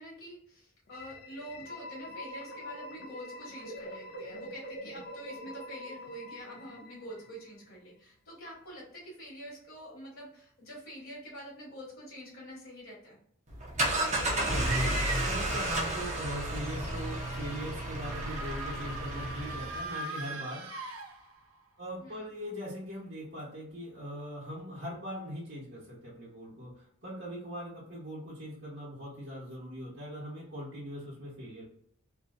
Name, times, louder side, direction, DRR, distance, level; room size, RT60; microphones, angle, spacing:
voice 1, 0.0-13.2 22.0-22.3, equal, 65° left, -5 dB, 1.1 m, -46 dB
sound 1, 0.9-7.6, left 1 dB, 50° left, 0.5 m, -45 dB
sound 2, 13.5-19.9, right 1 dB, 30° right, 0.6 m, -32 dB
voice 2, 14.4-20.7 21.8-31.6, equal, 55° right, -7 dB, 1.0 m, -41 dB
sound 3, 17.9-21.6, right 2 dB, 75° right, 0.5 m, -41 dB
2.7 x 2.5 x 2.4 m, 0.69 s
head